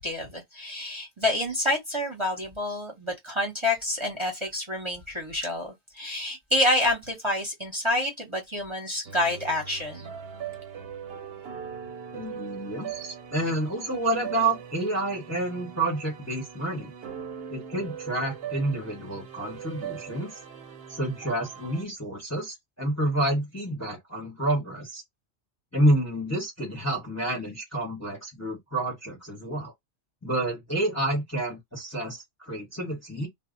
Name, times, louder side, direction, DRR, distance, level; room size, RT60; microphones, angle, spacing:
voice 1, 0.0-10.1, left 1 dB, 30° right, 0.8 m, -28 dB
sound 1, 9.0-21.8, right 8 dB, 65° right, 0.8 m, -40 dB
voice 2, 12.1-16.9 17.5-20.3 20.9-25.0 25.7-29.7 30.2-33.3, right 1 dB, 15° left, 0.7 m, -29 dB
2.0 x 2.0 x 3.7 m
omnidirectional pair, 1.2 m